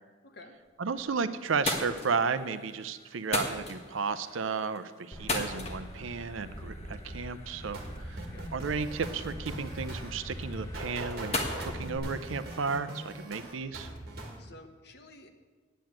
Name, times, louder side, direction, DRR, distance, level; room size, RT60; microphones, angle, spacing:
voice 1, 0.2-0.6 8.3-8.5 14.4-15.3, left 2 dB, 55° left, 5 dB, 1.1 m, -51 dB
sound 1, 0.6-1.1 1.4-13.1, left 2 dB, 30° left, 1.3 m, -39 dB
voice 2, 0.8-8.2 8.5-13.9, right 5 dB, 75° right, 13 dB, 0.6 m, -33 dB
sound 2, 5.1-12.0, equal, 15° left, 1.0 m, -43 dB
sound 3, 7.7-14.4, right 1 dB, 50° right, 2.0 m, -41 dB
9.0 x 7.7 x 8.7 m, 1.3 s
head